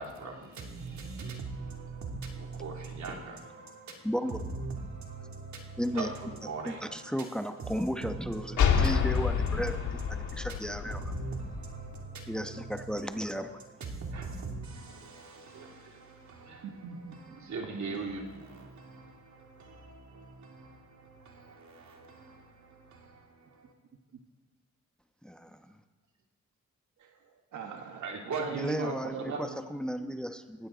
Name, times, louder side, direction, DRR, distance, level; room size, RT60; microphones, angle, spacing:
voice 1, 0.0-23.7 28.0-29.6, right 3 dB, 75° right, 3.0 m, -41 dB
voice 2, 4.0-4.4 5.8-6.1 6.7-11.0 12.3-13.5 25.2-25.8 28.6-30.7, equal, 5° left, 1.0 m, -34 dB
sound 1, 8.6-12.1, left 7 dB, 85° left, 1.7 m, -29 dB
voice 3, 16.6-17.4 18.3-18.4 27.0-29.3, right 6 dB, 90° right, 1.5 m, -42 dB
20.5 x 16.0 x 4.0 m
cardioid pair, 80°, 30 cm